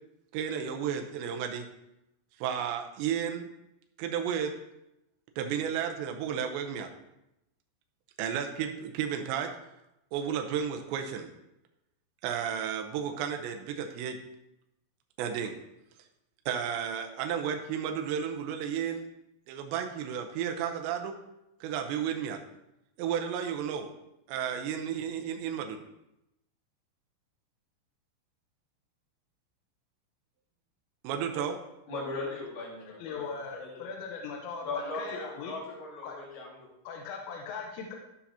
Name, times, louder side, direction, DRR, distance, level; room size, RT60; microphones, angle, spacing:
voice 1, 0.3-1.7 2.4-3.5 4.0-4.5 5.4-6.9 8.2-9.5 10.1-11.3 12.2-14.2 15.2-15.5 16.5-19.0 19.5-21.1 21.6-22.4 23.0-23.9 24.3-25.8 31.0-31.6, right 8 dB, 80° right, 2.8 m, -32 dB
voice 2, 31.9-34.0 34.6-36.7 37.0-37.1, left 3 dB, 50° left, 2.8 m, -39 dB
voice 3, 33.0-35.5 36.0-36.2 36.9-38.0, left 5 dB, 85° left, 3.5 m, -39 dB
14.5 x 5.8 x 2.9 m
omnidirectional pair, 5.8 m